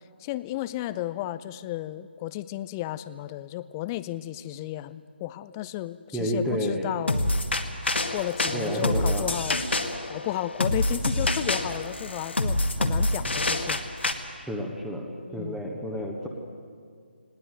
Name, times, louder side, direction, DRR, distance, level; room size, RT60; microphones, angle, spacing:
voice 1, 0.2-7.3 8.1-9.6 10.1-13.8 15.3-15.6, left 14 dB, 15° left, 16 dB, 0.5 m, -33 dB
voice 2, 6.1-6.9 8.5-9.3 14.3-16.3, equal, ahead, 1 dB, 1.4 m, -30 dB
sound 1, 7.1-14.1, left 2 dB, 75° left, 2.1 m, -27 dB
20.0 x 18.5 x 9.2 m, 2.1 s
figure-of-eight pair, 150°, 6 cm